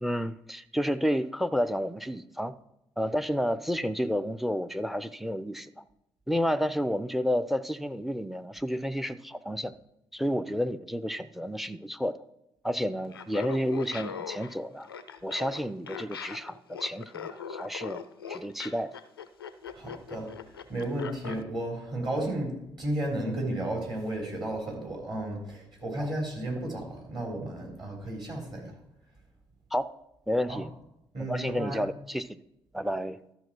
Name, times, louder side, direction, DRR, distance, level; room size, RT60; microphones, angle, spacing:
voice 1, 0.0-2.5 3.0-5.8 6.3-9.7 10.1-12.2 12.6-14.9 15.2-18.9 26.0-26.1 29.7-29.9 30.3-30.7 31.3-32.4 32.7-33.2, equal, ahead, 14 dB, 0.4 m, -30 dB
Laughter, 13.1-21.4, left 7 dB, 85° left, 0.4 m, -40 dB
voice 2, 19.7-20.3 20.7-28.7 30.5-30.6 31.1-31.9, right 1 dB, 40° right, 0 dB, 3.7 m, -33 dB
12.5 x 5.8 x 4.4 m, 0.83 s
figure-of-eight pair, 45°, 12 cm